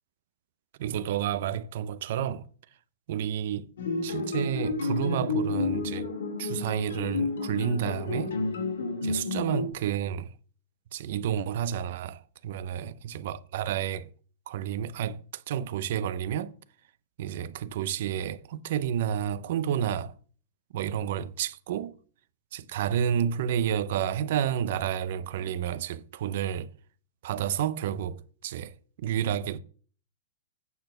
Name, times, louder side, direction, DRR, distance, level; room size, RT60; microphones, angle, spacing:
voice 1, 0.8-2.5 3.1-3.7 4.0-6.1 6.4-8.4 9.0-10.3 10.9-14.1 14.5-16.5 17.2-20.2 20.7-22.0 22.5-26.7 27.2-29.6, right 9 dB, 50° right, 0.6 m, -30 dB
sound 1, 3.8-9.7, left 4 dB, 85° left, 2.4 m, -31 dB
9.2 x 4.1 x 6.4 m
supercardioid pair, 170°, 0 cm